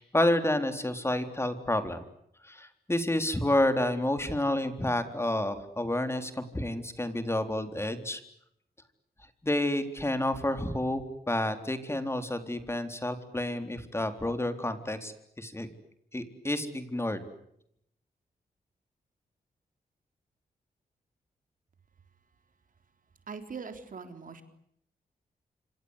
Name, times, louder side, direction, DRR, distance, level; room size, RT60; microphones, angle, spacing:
voice 1, 0.0-2.0 2.4-8.2 9.4-15.7 16.1-17.3, left 1 dB, 15° left, 8 dB, 3.9 m, -29 dB
voice 2, 23.3-24.4, right 5 dB, 60° right, 8 dB, 3.8 m, -41 dB
27.5 x 26.0 x 8.3 m, 0.74 s
cardioid pair, 75°, 16 cm